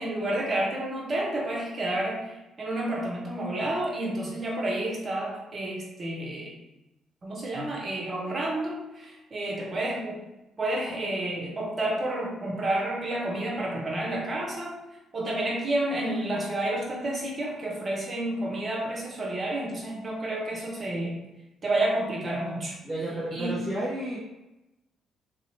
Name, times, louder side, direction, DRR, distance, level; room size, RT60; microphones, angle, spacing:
voice 1, 0.0-6.5 7.2-10.2 10.6-14.7 15.1-21.1 21.6-22.8 23.3-23.6, right 1 dB, 40° right, -3 dB, 0.9 m, -30 dB
voice 2, 22.8-24.2, right 1 dB, 10° right, -9 dB, 0.9 m, -31 dB
2.7 x 2.1 x 2.8 m, 0.96 s
hypercardioid pair, 45°, 0 cm